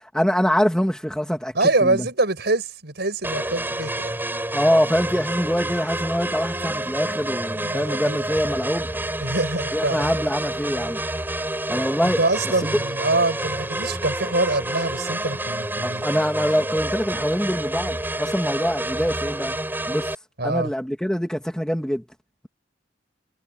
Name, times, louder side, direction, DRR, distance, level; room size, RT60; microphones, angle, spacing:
voice 1, 0.1-1.6 1.8-2.1 4.5-8.9 9.7-11.0 11.7-12.2 12.7-12.8 15.8-19.6 19.9-20.1 20.4-22.0, equal, 5° left, 2.3 m, -24 dB
voice 2, 1.5-4.1 7.5-8.2 9.2-10.1 12.2-16.0 20.4-20.7, right 2 dB, 65° right, 7.0 m, -24 dB
sound 1, 3.2-20.1, right 1 dB, 10° right, 5.9 m, -28 dB
head